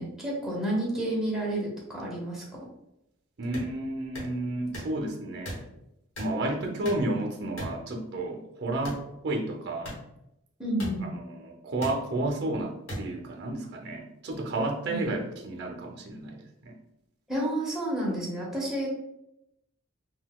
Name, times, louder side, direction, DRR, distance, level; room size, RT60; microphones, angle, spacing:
voice 1, 0.0-2.4 10.6-11.1 14.9-15.0 17.3-18.9, right 1 dB, ahead, -5 dB, 0.8 m, -30 dB
voice 2, 3.4-5.6 6.2-9.9 11.1-16.4 16.6-16.7, right 2 dB, 55° right, 1 dB, 0.5 m, -32 dB
sound 1, 3.5-3.7 4.1-4.3 4.7-4.9 5.4-5.6 6.2-6.3 6.8-7.1 7.6-7.8 8.8-9.0 9.8-10.0 10.8-10.9 11.8-11.9 12.9-13.0, equal, 70° left, 1.1 m, -36 dB
3.8 x 2.2 x 2.2 m, 0.83 s
head